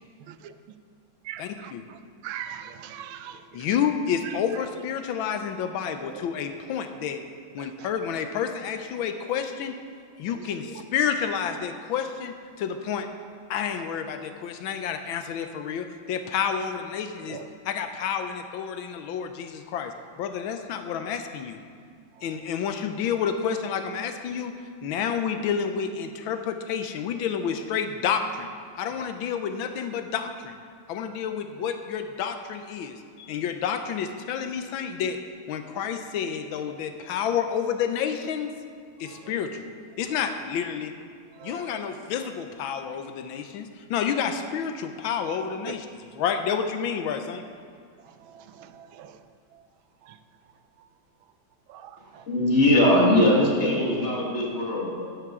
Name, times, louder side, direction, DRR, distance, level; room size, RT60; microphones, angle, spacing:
voice 1, 0.3-0.8 1.2-3.7 4.2-4.4 6.1-6.5 6.9-7.0 7.6-7.9 10.3-10.8 13.7-13.9 17.3-17.5 22.1-22.4 29.0-29.1 31.0-31.2 35.7-35.8 39.0-39.3 40.2-40.3 41.3-41.8 45.7-45.8 48.0-49.7 50.0-50.2 50.8-50.9 51.7-52.3, right 9 dB, 85° right, 10 dB, 1.4 m, -43 dB
voice 2, 1.4-1.8 3.5-7.2 7.5-9.8 10.2-13.1 13.5-17.4 17.7-21.6 22.2-24.5 24.8-28.5 28.8-30.6 30.9-35.2 35.5-38.5 39.0-39.6 40.0-40.9 41.4-45.9 46.2-47.4, left 7 dB, 85° left, 7 dB, 1.5 m, -29 dB
voice 3, 52.3-55.1, left 1 dB, 35° left, -3 dB, 1.9 m, -21 dB
11.0 x 10.5 x 3.7 m, 2.2 s
omnidirectional pair, 2.2 m